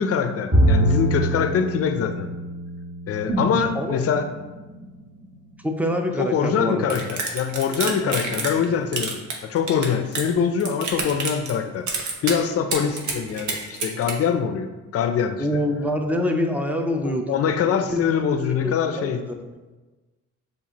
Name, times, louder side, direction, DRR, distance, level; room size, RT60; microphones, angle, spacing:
voice 1, 0.0-2.3 3.1-4.3 6.2-11.9 12.2-15.6 17.0-19.3, left 7 dB, 50° left, 7 dB, 0.5 m, -24 dB
Bowed string instrument, 0.5-3.9, right 1 dB, 25° right, 1.2 m, -23 dB
sound 1, 3.3-7.3 7.6-7.7, right 1 dB, 45° right, 1.0 m, -33 dB
voice 2, 5.6-7.0 8.0-8.2 15.4-17.3 17.9-19.1, equal, 5° right, 3 dB, 0.5 m, -25 dB
sound 2, 6.9-8.6 8.9-10.3 10.6-11.6 11.9-12.4 12.7-14.1, right 4 dB, 70° right, 0.9 m, -28 dB
7.0 x 2.5 x 2.9 m, 1.2 s
cardioid pair, 90°, 30 cm